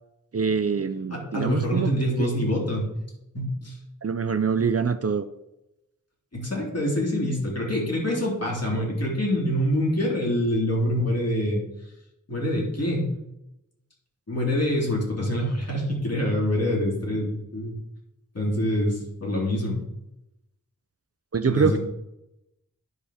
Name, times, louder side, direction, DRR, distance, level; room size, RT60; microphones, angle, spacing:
voice 1, 0.3-1.9 2.2-2.4 4.0-5.3 21.3-21.8, right 5 dB, 45° right, 11 dB, 0.5 m, -24 dB
voice 2, 1.1-2.9 3.3-3.8 6.3-11.6 12.3-13.1 14.3-17.7 18.3-19.8 21.4-21.8, equal, 50° left, -4 dB, 3.5 m, -25 dB
11.0 x 5.1 x 5.0 m, 0.89 s
wide cardioid pair, 50°, 32 cm